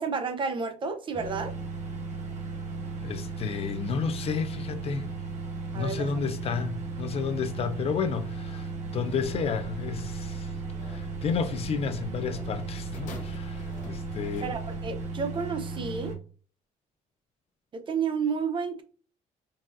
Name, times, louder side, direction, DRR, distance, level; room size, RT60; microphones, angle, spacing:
voice 1, 0.0-1.5 5.7-6.1 14.4-16.2 17.7-18.8, right 5 dB, 35° right, 0.5 m, -31 dB
sound 1, 1.1-16.1, right 4 dB, 55° right, 1.1 m, -36 dB
voice 2, 3.0-5.1 5.7-10.5 10.8-14.5, left 6 dB, 45° left, 0.4 m, -31 dB
Alarm, 9.2-15.0, left 1 dB, 5° right, 1.0 m, -46 dB
sound 2, 12.9-15.2 16.0-16.1, left 2 dB, 60° left, 0.9 m, -46 dB
3.9 x 2.4 x 2.5 m
cardioid pair, 115°, 14 cm